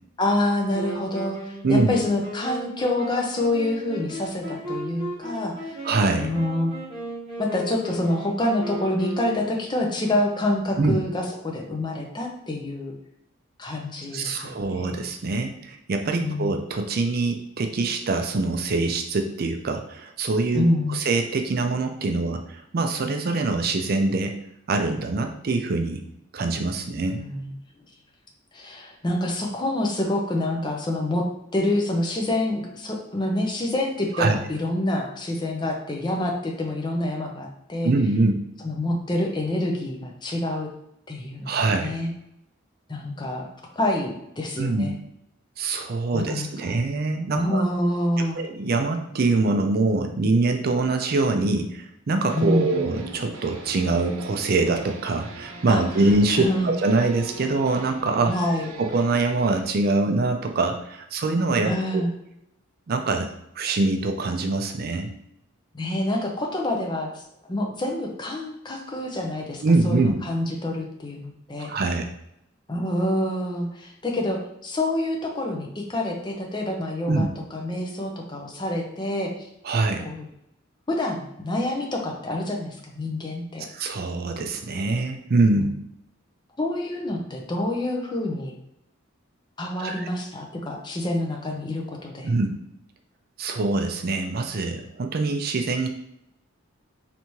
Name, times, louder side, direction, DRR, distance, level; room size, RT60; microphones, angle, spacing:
voice 1, 0.2-5.8 6.2-6.7 7.4-12.9 13.6-15.0 16.2-16.5 20.5-21.0 27.2-27.5 28.5-31.3 31.5-37.9 38.6-40.7 41.1-41.5 41.8-42.1 42.9-43.5 43.8-45.0 46.1-46.8 47.3-48.4 52.3-52.8 55.7-55.8 56.3-56.7 58.3-58.7 61.6-62.1 65.7-67.2 67.5-71.7 72.7-77.3 77.5-79.5 80.0-80.3 80.9-83.7 85.5-85.7 86.6-88.5 89.6-92.3, left 1 dB, 20° left, 1 dB, 0.6 m, -27 dB
Wind instrument woodwind instrument, 0.7-9.7, right 1 dB, 25° right, 1.6 m, -36 dB
voice 2, 1.6-2.0 5.8-6.3 10.8-11.0 14.1-24.4 24.7-26.0 26.3-27.2 34.1-34.4 37.8-38.4 41.5-41.9 44.6-44.9 45.6-47.6 48.3-58.3 58.8-62.0 62.9-63.3 63.6-65.1 69.6-70.2 71.6-72.1 77.1-77.3 79.6-80.1 83.7-85.8 89.8-90.1 92.2-92.6 93.4-95.9, right 3 dB, 45° right, 5 dB, 0.4 m, -24 dB
sound 1, 52.3-59.6, right 2 dB, 90° right, 0.6 m, -41 dB
4.1 x 3.4 x 3.0 m, 0.79 s
head